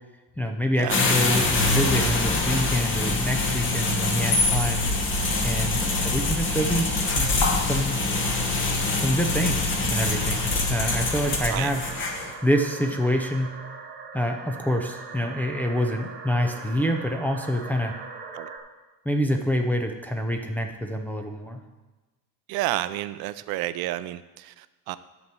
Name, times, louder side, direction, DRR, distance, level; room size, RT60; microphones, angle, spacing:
voice 1, 0.4-4.8 5.4-7.3 7.6-8.0 9.0-11.9 12.4-13.6 14.1-17.9 19.1-21.6, equal, 5° left, 2 dB, 0.4 m, -26 dB
sound 1, 0.9-12.3, left 2 dB, 30° left, 1.2 m, -25 dB
sound 2, 2.3-18.6, right 4 dB, 25° right, 1.1 m, -43 dB
sound 3, 4.1-8.3 8.7-9.7 10.0-11.3, left 3 dB, 75° left, 3.8 m, -31 dB
voice 2, 22.5-25.0, right 15 dB, 65° right, 13 dB, 0.6 m, -30 dB
11.0 x 4.3 x 7.5 m, 1.2 s
cardioid pair, 175°, 40 cm